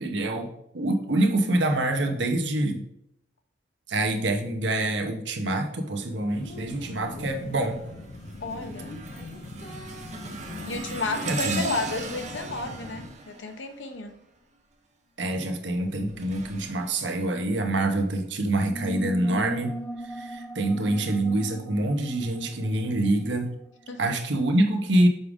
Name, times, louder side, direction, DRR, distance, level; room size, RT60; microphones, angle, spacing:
voice 1, 0.0-2.8 3.9-7.8 11.3-11.7 15.2-19.7 20.0-23.5 24.0-25.1, right 1 dB, 70° right, 4 dB, 0.9 m, -26 dB
sound 1, 6.3-13.1, left 1 dB, 40° left, 0.7 m, -41 dB
sound 2, 6.7-7.1 7.6-14.4 15.6-17.8 18.5-18.7 19.6-19.7, right 4 dB, 40° right, 0.8 m, -38 dB
voice 2, 8.4-8.9 10.7-14.2 23.9-24.0, left 3 dB, 85° left, 6 dB, 0.8 m, -32 dB
sound 3, 18.6-23.9, right 1 dB, 10° left, 0.6 m, -38 dB
6.6 x 4.9 x 3.6 m, 0.77 s
head